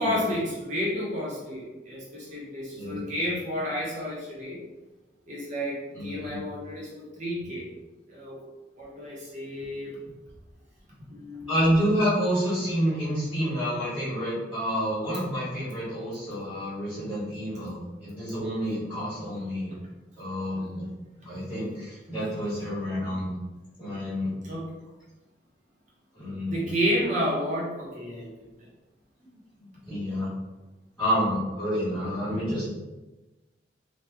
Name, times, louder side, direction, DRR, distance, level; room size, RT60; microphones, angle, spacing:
voice 1, 0.0-4.6 5.3-7.6 8.1-8.4 8.8-10.0 11.1-11.5 24.4-24.6 26.5-28.3, equal, 45° right, -5 dB, 1.0 m, -31 dB
voice 2, 5.9-6.4 11.5-19.7 20.2-20.8 21.2-23.3 23.8-24.3 26.1-26.7 29.6-30.3 31.0-32.7, equal, 5° left, -13 dB, 1.5 m, -29 dB
3.0 x 2.5 x 3.4 m, 1.1 s
head